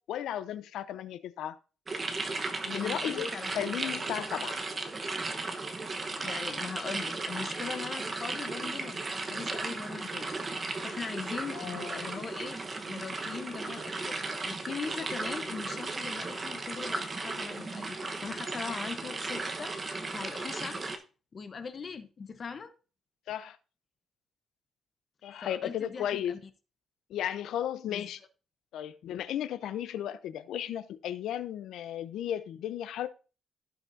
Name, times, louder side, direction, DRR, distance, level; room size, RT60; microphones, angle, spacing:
voice 1, 0.0-1.6 2.6-4.6 11.5-12.1 23.3-23.6 25.2-26.4 27.1-28.2 28.7-33.1, left 10 dB, 85° left, 0.6 m, -35 dB
sound 1, 1.9-21.0, right 3 dB, 30° right, 1.1 m, -36 dB
voice 2, 2.8-3.9 6.1-10.3 10.5-19.7 20.1-20.8 21.3-22.7 25.4-26.4 27.9-28.1, left 5 dB, 40° left, 0.9 m, -41 dB
15.5 x 5.9 x 2.7 m
cardioid pair, 125°, 0 cm